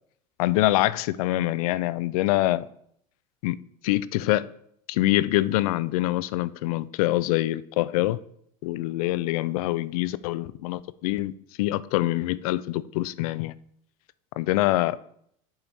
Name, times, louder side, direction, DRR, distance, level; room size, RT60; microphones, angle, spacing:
voice 1, 0.4-2.6 3.4-3.6 3.8-4.5 4.9-8.2 8.6-11.3 11.6-13.5 14.4-15.0, left 16 dB, 80° left, 18 dB, 0.4 m, -25 dB
7.5 x 4.1 x 4.5 m, 0.69 s
supercardioid pair, 120°, 18 cm